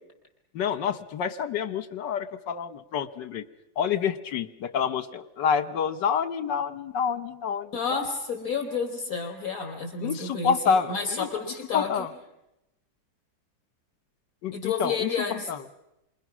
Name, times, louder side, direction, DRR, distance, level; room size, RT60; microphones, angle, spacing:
voice 1, 0.5-3.4 3.8-8.0 10.0-11.3 11.7-12.1 14.4-15.1 15.5-15.6, left 7 dB, 70° left, 12 dB, 1.7 m, -28 dB
voice 2, 7.7-12.1 14.5-15.5, left 5 dB, 50° left, 4 dB, 5.0 m, -30 dB
28.5 x 27.0 x 6.2 m, 0.90 s
omnidirectional pair, 2.0 m